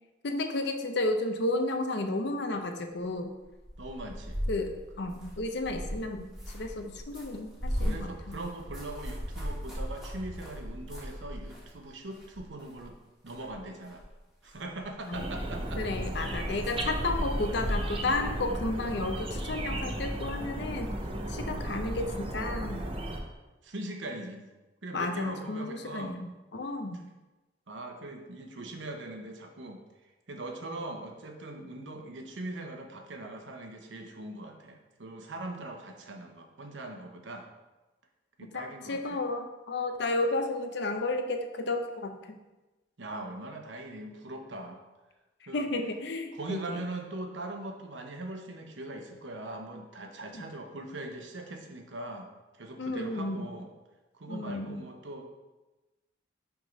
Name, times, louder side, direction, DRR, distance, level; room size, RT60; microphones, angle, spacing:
voice 1, 0.2-3.3 4.5-8.3 15.1-15.3 15.8-20.9 21.3-22.8 24.9-27.0 38.5-42.4 45.5-46.9 50.3-50.4 52.8-53.5 54.3-54.8, left 2 dB, 65° left, 6 dB, 0.7 m, -32 dB
sound 1, 3.5-11.8 12.1-12.9 13.3-14.1 14.4-15.1 15.6-15.7 16.1-18.2, equal, 5° right, 2.0 m, -37 dB
voice 2, 3.8-4.4 7.8-12.9 13.2-14.0 14.4-15.8 23.6-24.5 24.8-26.2 26.9-27.1 27.7-29.8 30.3-37.5 38.4-39.2 43.0-44.8 45.5-45.6 46.3-53.7 54.1-55.3, right 2 dB, 80° right, 3 dB, 0.9 m, -41 dB
sound 2, 15.1-23.2, right 1 dB, 30° right, 0.7 m, -35 dB
6.0 x 3.7 x 5.3 m, 1.1 s
head